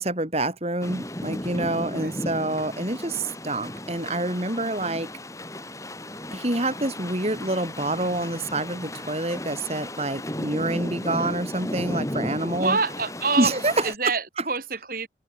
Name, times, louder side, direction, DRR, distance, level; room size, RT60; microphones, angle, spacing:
voice 1, 0.0-5.1 6.3-12.8 13.4-13.9, right 2 dB, 35° right, 4.6 m, -27 dB
sound 1, 0.8-13.9, left 1 dB, 20° left, 5.7 m, -35 dB
voice 2, 1.8-2.2 4.8-5.0 12.4-15.1, right 4 dB, 50° right, 4.9 m, -27 dB
open air
head